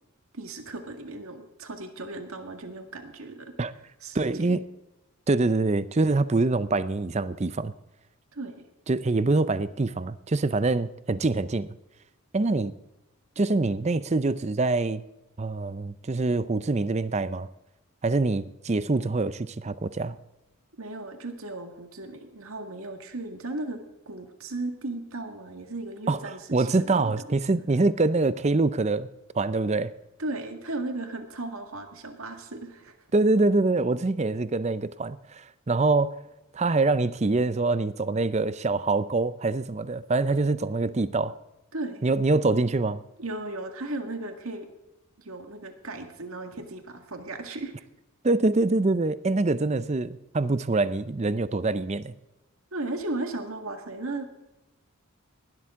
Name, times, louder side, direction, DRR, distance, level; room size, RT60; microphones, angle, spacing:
voice 1, 0.3-3.5 4.0-4.6 8.3-8.6 20.8-23.8 24.1-26.9 30.2-32.9 41.7-42.1 43.2-44.7 45.2-47.7 52.7-54.3, right 2 dB, 70° right, 6 dB, 1.8 m, -36 dB
voice 2, 4.1-4.6 5.3-7.7 8.9-11.7 12.3-12.7 13.4-15.0 15.4-17.5 18.0-20.2 26.1-26.2 26.5-29.1 29.4-29.9 33.1-36.1 36.5-41.3 42.0-43.0 48.2-52.1, right 3 dB, 30° right, 15 dB, 0.5 m, -25 dB
18.5 x 12.5 x 3.7 m, 0.99 s
head